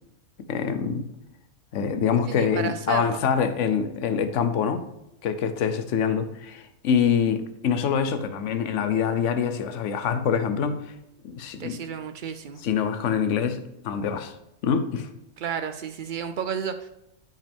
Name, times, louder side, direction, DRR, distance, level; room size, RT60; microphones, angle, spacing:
voice 1, 0.5-1.1 1.7-4.9 5.2-10.9 11.2-11.8 12.6-14.3 14.6-15.1, left 7 dB, 65° left, 9 dB, 1.0 m, -25 dB
voice 2, 2.3-3.2 11.6-12.6 15.4-16.9, right 7 dB, 90° right, 9 dB, 0.4 m, -32 dB
12.0 x 5.1 x 3.5 m, 0.84 s
omnidirectional pair, 1.5 m